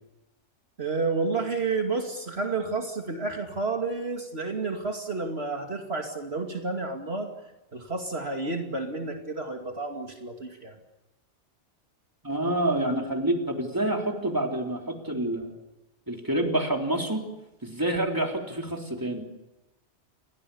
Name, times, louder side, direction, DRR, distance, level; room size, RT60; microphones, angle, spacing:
voice 1, 0.8-7.3 7.7-10.8, right 3 dB, 60° right, 3 dB, 2.7 m, -30 dB
voice 2, 12.2-15.5 16.1-17.2 17.6-19.2, right 1 dB, 15° right, 2 dB, 3.7 m, -27 dB
30.0 x 23.0 x 7.1 m, 0.97 s
omnidirectional pair, 1.2 m